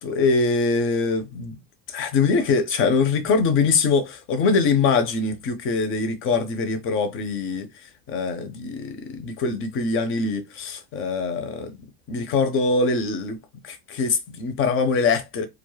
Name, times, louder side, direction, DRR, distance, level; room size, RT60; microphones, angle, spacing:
voice 1, 0.0-1.6 1.9-7.7 8.1-11.7 12.1-13.4 13.6-15.5, left 4 dB, 30° left, 0.4 m, -23 dB
2.3 x 2.0 x 3.1 m
supercardioid pair, 130°, 47 cm